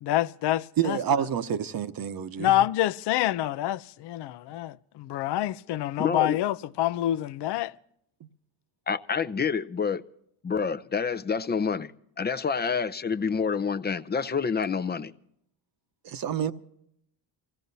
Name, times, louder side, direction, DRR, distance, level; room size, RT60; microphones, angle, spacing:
voice 1, 0.0-1.0 2.4-7.7, left 13 dB, 65° left, 0.6 m, -27 dB
voice 2, 0.8-2.5 16.0-16.5, right 8 dB, 50° right, 1.0 m, -28 dB
voice 3, 6.0-6.4 8.9-10.0 10.4-15.1, left 6 dB, 20° left, 0.6 m, -28 dB
26.0 x 16.5 x 2.7 m
cardioid pair, 105°, 45 cm